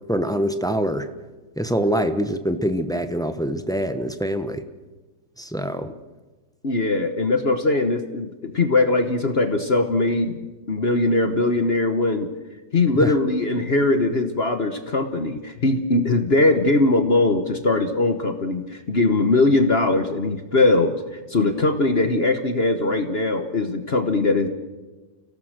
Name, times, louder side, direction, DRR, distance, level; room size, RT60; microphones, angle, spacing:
voice 1, 0.1-1.1 1.6-4.6 5.4-5.9 13.0-13.1, equal, 5° left, 8 dB, 0.6 m, -24 dB
voice 2, 6.6-10.4 10.7-12.3 12.7-20.9 21.3-24.5, left 2 dB, 40° left, 7 dB, 1.2 m, -20 dB
29.5 x 17.0 x 6.6 m, 1.2 s
omnidirectional pair, 2.0 m